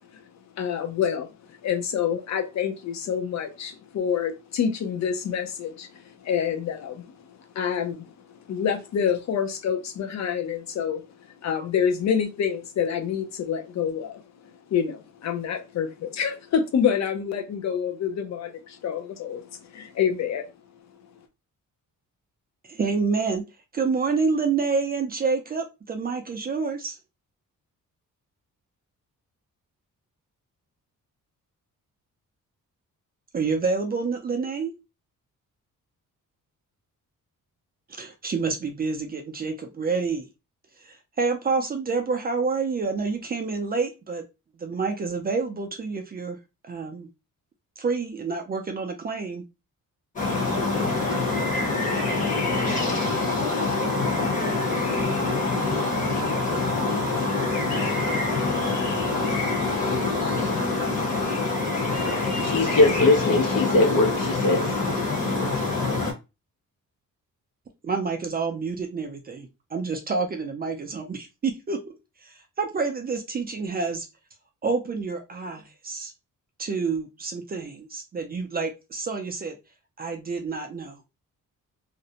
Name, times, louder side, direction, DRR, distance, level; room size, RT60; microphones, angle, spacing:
voice 1, 0.6-1.4 1.6-11.0 11.4-20.5, left 7 dB, 55° left, 0.5 m, -27 dB
voice 2, 22.6-23.4 23.7-27.0 33.3-34.7 38.0-40.3 40.8-44.2 44.6-46.4 46.6-47.1 47.8-49.4 67.8-71.9 72.2-74.1 74.6-76.1 76.6-79.6 80.0-81.0, right 4 dB, 30° right, 0.3 m, -28 dB
sound 1, 50.2-66.1, left 3 dB, 25° left, 0.8 m, -25 dB
voice 3, 62.4-64.8, left 2 dB, 85° left, 0.9 m, -21 dB
2.5 x 2.0 x 2.7 m
wide cardioid pair, 170°, 33 cm